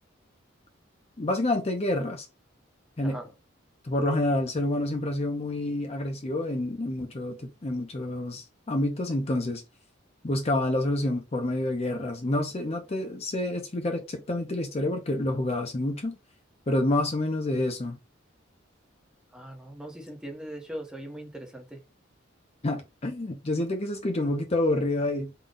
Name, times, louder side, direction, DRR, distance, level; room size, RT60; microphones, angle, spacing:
voice 1, 1.2-2.3 3.0-3.2 3.8-9.6 10.2-16.2 16.7-18.0 22.6-25.3, left 1 dB, 30° left, 0.6 m, -28 dB
voice 2, 19.3-21.8, right 1 dB, 5° right, 0.9 m, -40 dB
3.8 x 2.2 x 3.7 m
head